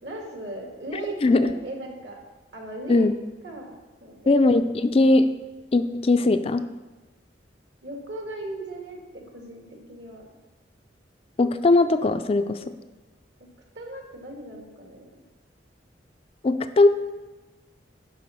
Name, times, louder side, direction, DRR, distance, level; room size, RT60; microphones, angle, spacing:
voice 1, 0.0-2.2 2.5-3.1 3.4-4.4 7.8-10.3 13.8-15.1, right 2 dB, 65° right, 1 dB, 2.0 m, -37 dB
voice 2, 4.3-5.3 5.7-6.7 11.4-12.6 16.4-16.9, left 2 dB, 35° left, 9 dB, 0.4 m, -19 dB
11.0 x 4.6 x 5.7 m, 1.3 s
head